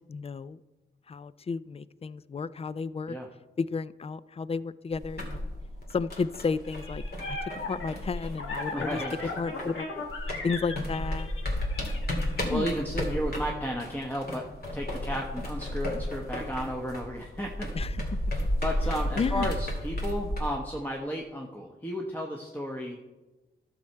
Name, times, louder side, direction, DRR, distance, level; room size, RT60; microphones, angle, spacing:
voice 1, 0.1-0.6 1.1-3.2 3.6-5.4 5.9-7.0 7.3-9.0 9.4-9.9 10.4-11.3 12.4-12.7 17.7-18.0 19.2-19.5, left 5 dB, 30° left, 17 dB, 0.3 m, -32 dB
sound 1, 4.9-9.8 10.1-20.4, left 1 dB, 50° left, 2.4 m, -33 dB
sound 2, 6.6-12.4, left 3 dB, 75° left, 1.7 m, -38 dB
voice 2, 8.7-9.3 12.5-14.4 14.7-17.7 18.6-23.0, equal, 10° left, 0 dB, 1.0 m, -33 dB
12.0 x 6.5 x 4.5 m, 1.2 s
cardioid pair, 70°, 21 cm